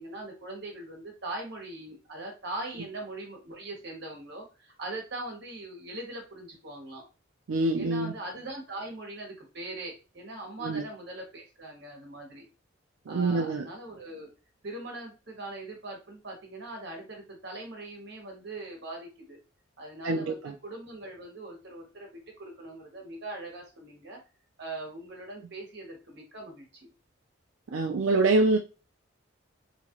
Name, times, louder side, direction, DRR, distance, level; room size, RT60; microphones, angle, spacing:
voice 1, 0.0-7.0 7.7-12.4 13.1-14.3 14.6-19.4 19.8-22.1 22.4-24.2 24.6-26.9, right 2 dB, 55° right, 0 dB, 1.1 m, -41 dB
voice 2, 7.5-8.1 10.6-10.8 13.1-13.7 20.0-20.5 27.7-28.6, right 3 dB, 90° right, 2 dB, 0.4 m, -25 dB
2.9 x 2.4 x 2.9 m, 0.32 s
head